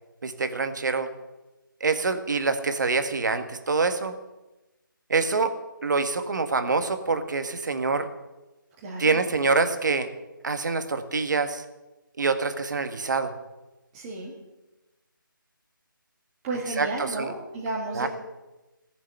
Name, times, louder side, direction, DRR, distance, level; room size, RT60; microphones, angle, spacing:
voice 1, 0.2-1.1 1.8-4.1 5.1-5.5 5.8-8.1 9.0-10.1 10.4-11.6 12.2-13.3 16.8-17.3 17.9-18.1, right 4 dB, 60° right, 8 dB, 1.8 m, -25 dB
voice 2, 8.8-9.2 13.9-14.3 16.4-18.1, right 2 dB, 15° right, -4 dB, 1.9 m, -32 dB
17.5 x 7.3 x 10.0 m, 1.0 s
figure-of-eight pair, 170°, 12 cm